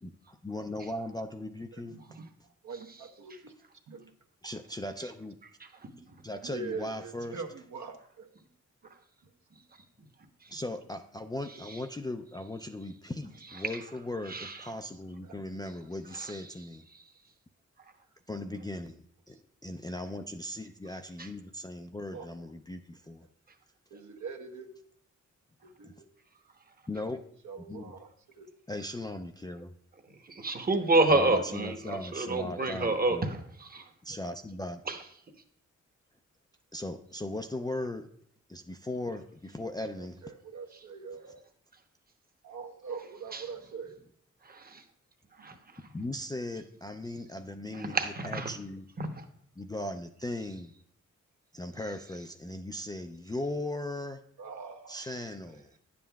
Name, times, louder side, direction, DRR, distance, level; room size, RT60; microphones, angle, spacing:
voice 1, 0.0-2.0 4.4-5.4 6.2-7.4 10.5-16.9 18.3-23.3 25.8-25.9 26.9-27.2 27.7-27.8 28.7-29.7 31.1-33.4 34.0-34.8 36.7-38.1 38.5-40.2 45.9-48.9 49.6-50.7 51.5-54.2 54.9-55.7, left 1 dB, 15° left, 4 dB, 0.3 m, -38 dB
voice 2, 1.7-3.5 3.9-4.1 6.4-8.3 15.2-15.4 18.5-18.6 19.3-19.4 22.1-22.3 23.9-24.7 25.6-26.1 27.4-28.1 28.4-28.5 32.2-32.8 33.7-33.9 40.2-41.4 42.4-44.0 45.4-45.5 54.4-55.1 55.5-55.8, right 5 dB, 70° right, 4 dB, 0.9 m, -43 dB
voice 3, 5.6-5.9 11.7-11.8 13.6-13.7 14.3-14.6 16.1-16.4 16.9-17.0 21.2-21.3 30.1-33.9 34.9-35.0 43.3-43.4 44.4-44.8 45.4-45.6 47.7-48.5 49.0-49.2, right 2 dB, 30° right, 6 dB, 0.9 m, -29 dB
9.9 x 7.4 x 2.3 m, 0.66 s
cardioid pair, 85°, 31 cm